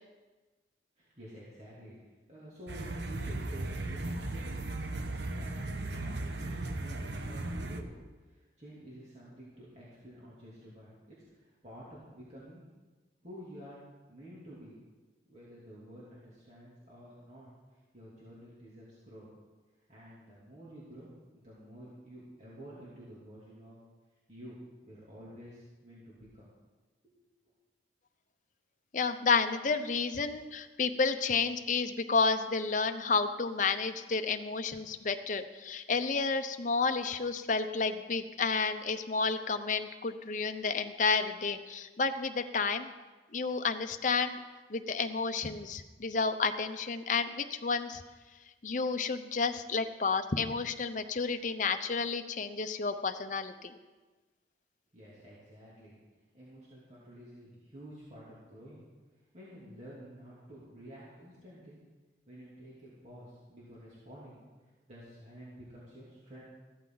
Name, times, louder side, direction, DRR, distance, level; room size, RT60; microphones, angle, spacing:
voice 1, 1.0-2.0 2.3-4.6 4.9-7.9 8.2-12.6 13.2-13.8 14.1-14.7 15.2-17.5 17.9-19.3 19.9-23.8 24.3-26.5 27.0-27.1 54.9-56.0 56.3-58.8 59.3-61.8 62.3-64.4 64.9-66.4, equal, 40° right, -8 dB, 3.0 m, -50 dB
sound 1, 2.7-7.8, right 2 dB, 70° right, 1.1 m, -36 dB
voice 2, 28.9-42.9 43.3-44.4 44.7-48.0 48.6-53.7, left 4 dB, 45° left, 8 dB, 0.7 m, -31 dB
15.0 x 13.0 x 4.0 m, 1.3 s
head